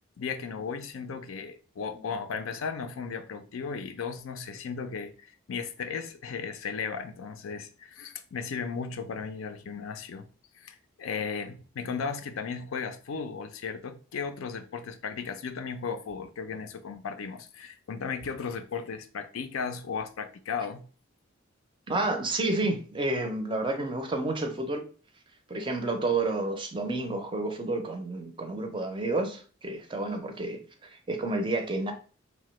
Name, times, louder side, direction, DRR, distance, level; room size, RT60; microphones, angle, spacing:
voice 1, 0.2-10.3 10.6-20.8, left 5 dB, 90° left, 0.4 m, -35 dB
voice 2, 21.9-24.9 25.5-31.9, right 2 dB, 25° right, 0.4 m, -30 dB
2.9 x 2.1 x 3.0 m
head